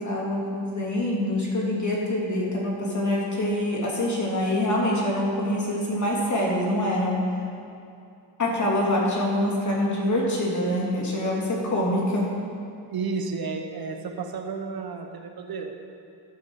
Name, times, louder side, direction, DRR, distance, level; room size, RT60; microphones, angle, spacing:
voice 1, 0.0-7.2 8.4-12.3, left 1 dB, 40° left, -4 dB, 2.7 m, -25 dB
voice 2, 12.9-15.7, right 4 dB, 55° right, 5 dB, 1.0 m, -32 dB
12.5 x 7.0 x 4.8 m, 2.6 s
cardioid pair, 85°, 44 cm